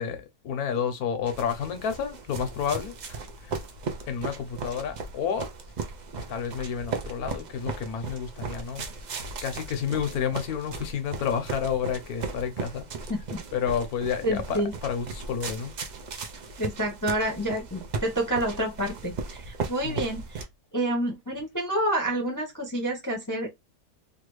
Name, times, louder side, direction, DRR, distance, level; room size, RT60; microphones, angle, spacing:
voice 1, 0.0-3.6 4.1-5.5 6.2-8.9 9.4-12.9 13.5-15.7 19.8-20.0, left 7 dB, 90° left, 1.3 m, -30 dB
sound 1, 1.3-20.4, right 4 dB, 90° right, 0.4 m, -37 dB
voice 2, 13.1-13.4 14.2-14.7 16.6-20.4 20.7-23.5, right 1 dB, 20° left, 0.6 m, -28 dB
3.2 x 2.4 x 3.0 m
omnidirectional pair, 1.5 m